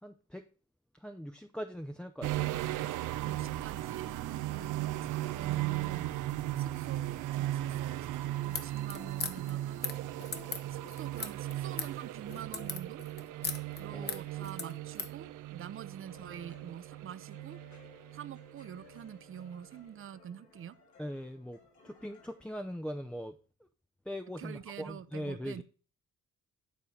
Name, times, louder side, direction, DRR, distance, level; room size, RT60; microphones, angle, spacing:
voice 1, 0.0-0.5 0.9-2.5 13.9-14.3 21.0-23.7 24.0-25.6, equal, 5° left, 0.5 m, -41 dB
sound 1, 2.2-19.1 19.3-19.5, right 15 dB, 85° right, 0.6 m, -37 dB
voice 2, 2.8-6.1 6.6-9.9 10.7-13.0 13.8-17.6 18.1-20.8 24.4-25.6, right 9 dB, 45° right, 0.6 m, -46 dB
sound 2, 8.4-15.2, left 5 dB, 35° left, 1.0 m, -40 dB
sound 3, 16.1-22.5, left 5 dB, 85° left, 3.9 m, -60 dB
9.3 x 3.7 x 4.1 m
cardioid pair, 90°, 30 cm